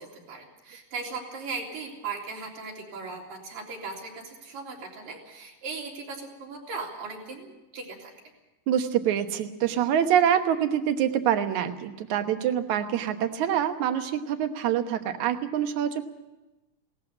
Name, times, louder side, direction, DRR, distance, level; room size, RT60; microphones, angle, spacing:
voice 1, 0.0-8.1, right 4 dB, 85° right, -1 dB, 5.2 m, -38 dB
voice 2, 8.7-16.0, right 9 dB, 65° right, 7 dB, 2.4 m, -25 dB
18.5 x 14.0 x 9.9 m, 1.0 s
omnidirectional pair, 3.9 m